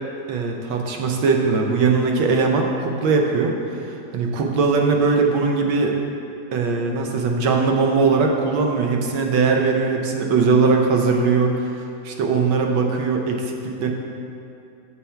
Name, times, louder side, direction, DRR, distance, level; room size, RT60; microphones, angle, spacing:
voice 1, 0.3-3.5 4.1-6.0 6.5-11.6 12.0-13.9, right 4 dB, 80° right, 2 dB, 1.5 m, -20 dB
6.8 x 6.2 x 4.4 m, 2.6 s
omnidirectional pair, 2.1 m